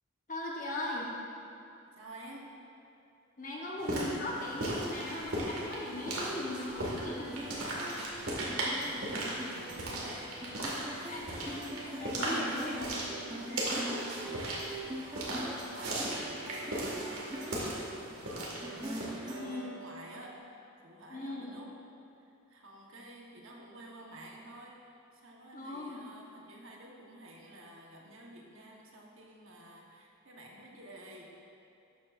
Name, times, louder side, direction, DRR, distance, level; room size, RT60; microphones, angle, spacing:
voice 1, 0.3-1.1 3.4-7.4 10.8-11.6 12.0-12.9 13.5-14.3 16.2-16.5 19.4-19.6 21.1-21.5 25.5-26.0, left 1 dB, 35° left, -3 dB, 1.1 m, -39 dB
voice 2, 2.0-2.6 8.2-13.0 14.2-14.8 15.1-15.7 15.9-21.8 22.2-31.8, right 1 dB, 65° right, -1 dB, 1.1 m, -51 dB
sound 1, 3.8-19.1, right 1 dB, 85° right, 1.9 m, -37 dB
sound 2, 7.2-20.4, right 1 dB, 20° right, 0.8 m, -43 dB
12.5 x 7.2 x 2.5 m, 2.8 s
head